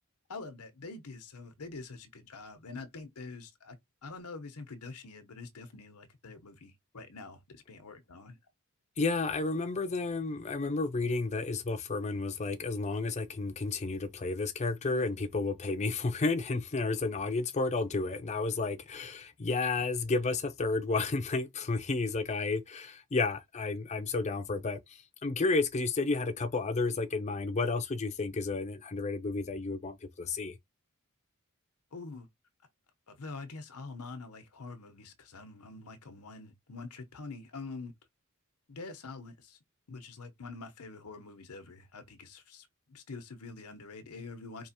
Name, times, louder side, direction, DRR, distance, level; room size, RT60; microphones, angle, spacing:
voice 1, 0.3-3.8 4.0-8.4 31.9-32.3 33.1-37.9 38.7-39.6 39.9-44.7, left 3 dB, 85° left, 0.9 m, -45 dB
voice 2, 9.0-30.6, left 3 dB, 30° left, 0.5 m, -32 dB
4.7 x 2.9 x 2.8 m
head